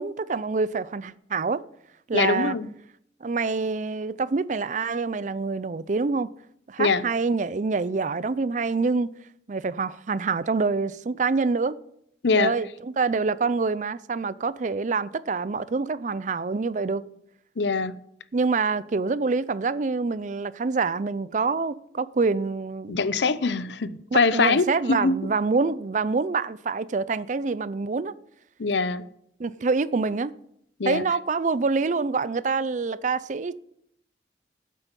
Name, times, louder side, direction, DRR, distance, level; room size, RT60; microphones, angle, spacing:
voice 1, 0.0-1.6 2.1-2.6 3.2-6.3 6.7-9.1 9.5-11.8 12.4-17.0 18.3-23.0 24.1-28.1 29.4-30.3 30.8-33.6, right 4 dB, 45° right, 0.5 m, -26 dB
voice 2, 2.1-2.7 6.8-7.0 12.2-12.5 17.6-18.0 22.9-25.3 28.6-29.1 30.8-31.0, left 4 dB, 75° left, 0.7 m, -23 dB
15.0 x 8.3 x 5.3 m
head